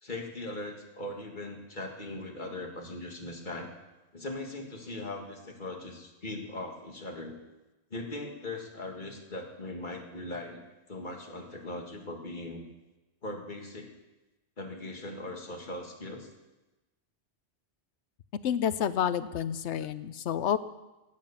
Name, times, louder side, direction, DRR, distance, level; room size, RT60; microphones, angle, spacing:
voice 1, 0.0-3.7 4.1-7.4 7.9-10.6 10.9-12.6 13.2-14.0 14.6-16.3, left 2 dB, 45° left, 2 dB, 2.1 m, -39 dB
voice 2, 18.4-20.6, left 9 dB, 85° left, 14 dB, 1.0 m, -29 dB
15.5 x 9.5 x 7.1 m, 1.1 s
omnidirectional pair, 1.1 m